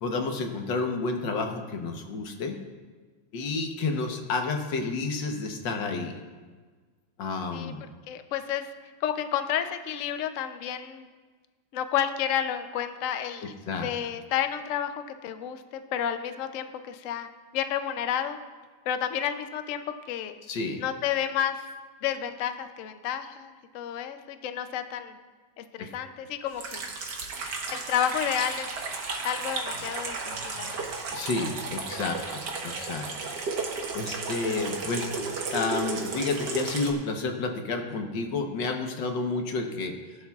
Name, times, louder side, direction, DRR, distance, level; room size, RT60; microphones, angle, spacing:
voice 1, 0.0-2.6 3.3-6.1 7.2-7.8 13.7-13.9 20.5-20.8 25.8-25.9 30.5-33.1 33.9-35.1 35.5-39.9, left 3 dB, 65° left, 4 dB, 1.7 m, -30 dB
voice 2, 8.1-8.7 9.0-11.1 11.7-13.5 13.8-15.6 15.9-17.3 17.5-18.4 18.9-20.4 20.8-21.6 22.0-25.2 25.6-26.8 27.7-28.7 29.2-30.8, left 9 dB, 85° left, 9 dB, 0.7 m, -30 dB
Water tap faucet / Sink (filling or washing), 26.5-36.9, right 4 dB, 60° right, 1.7 m, -33 dB
17.5 x 11.0 x 2.4 m, 1.4 s
omnidirectional pair, 2.2 m